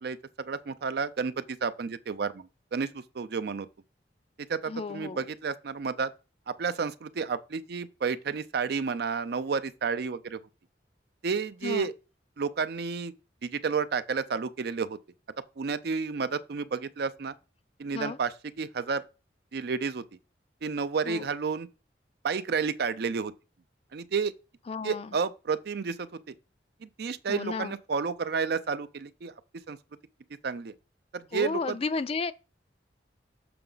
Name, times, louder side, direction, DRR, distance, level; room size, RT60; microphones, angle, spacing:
voice 1, 0.0-3.7 4.5-6.1 6.5-10.4 11.2-11.9 12.4-13.1 13.4-15.0 15.6-17.3 17.8-19.0 19.5-20.0 20.6-21.7 22.2-23.3 23.9-24.3 24.8-26.3 26.8-29.3 29.7-29.8 30.4-30.7 31.1-31.8, right 5 dB, 60° right, 0.4 m, -31 dB
voice 2, 4.7-5.2 11.6-11.9 17.9-18.2 21.1-21.3 24.7-25.2 27.3-27.8 31.3-32.3, left 4 dB, 35° left, 0.3 m, -33 dB
6.8 x 4.8 x 3.8 m
head